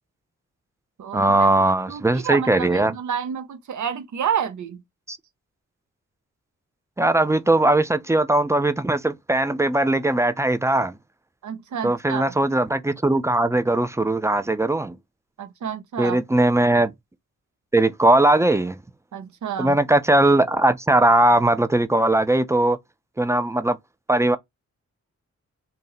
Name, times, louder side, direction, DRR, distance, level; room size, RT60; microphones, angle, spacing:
voice 1, 1.1-2.9 5.1-5.2 7.0-11.0 11.8-15.0 16.0-16.9 17.7-18.8 19.6-22.8 23.2-23.8 24.1-24.4, right 2 dB, 10° right, 0.4 m, -19 dB
voice 2, 1.9-4.8 11.4-12.2 15.4-16.2 19.1-19.8, right 8 dB, 75° right, 0.8 m, -29 dB
2.8 x 2.6 x 3.9 m
cardioid pair, 75°, 30 cm